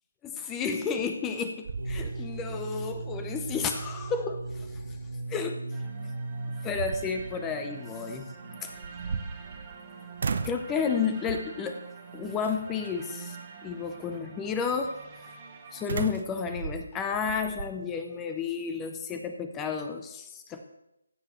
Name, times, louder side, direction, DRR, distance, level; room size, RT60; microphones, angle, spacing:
voice 1, 0.2-1.5 1.9-4.7 5.3-5.6 6.6-8.3 8.6-8.7 10.4-11.8 12.1-13.4 13.6-15.0 15.2-15.3 15.7-20.6, left 6 dB, 15° left, 6 dB, 0.6 m, -31 dB
sound 1, 1.0-1.4 1.6-2.7 3.0-3.1 5.8-5.9 6.5-7.4 8.7-9.8 10.2-10.7 11.3-11.6 12.4-12.9 15.9-17.7, right 5 dB, 50° right, 0.6 m, -35 dB
sound 2, 1.7-9.5, right 3 dB, 90° right, 1.4 m, -38 dB
sound 3, 5.7-15.9, right 5 dB, 25° right, 1.4 m, -46 dB
15.0 x 7.6 x 3.2 m, 0.87 s
figure-of-eight pair, 155°, 0 cm